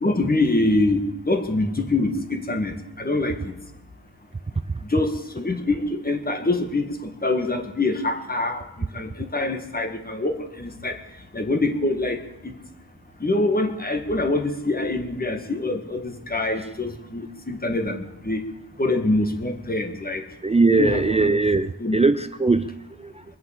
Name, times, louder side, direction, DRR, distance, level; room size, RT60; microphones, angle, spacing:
voice 1, 0.0-3.5 4.9-8.6 8.9-11.0 11.3-12.2 12.4-12.5 13.2-18.4 18.8-20.2 20.7-21.4 21.8-22.0, left 2 dB, 25° left, 6 dB, 1.8 m, -25 dB
voice 2, 20.4-23.2, right 3 dB, 15° right, 12 dB, 0.4 m, -20 dB
23.5 x 7.8 x 7.4 m, 0.95 s
wide cardioid pair, 105°, 38 cm